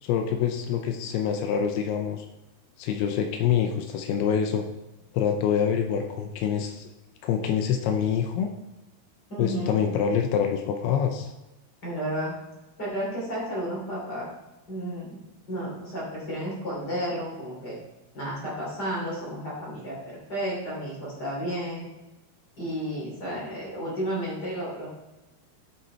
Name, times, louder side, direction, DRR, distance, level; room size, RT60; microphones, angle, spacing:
voice 1, 0.0-2.3 2.8-4.7 5.1-6.9 7.2-8.5 9.4-11.3, left 8 dB, 85° left, 5 dB, 2.4 m, -26 dB
voice 2, 9.3-9.8 11.8-12.3 12.8-14.3 14.7-15.2 15.5-17.8 18.1-21.9 22.6-24.9, equal, 25° left, -6 dB, 2.6 m, -32 dB
10.5 x 5.3 x 4.3 m, 1.0 s
omnidirectional pair, 5.1 m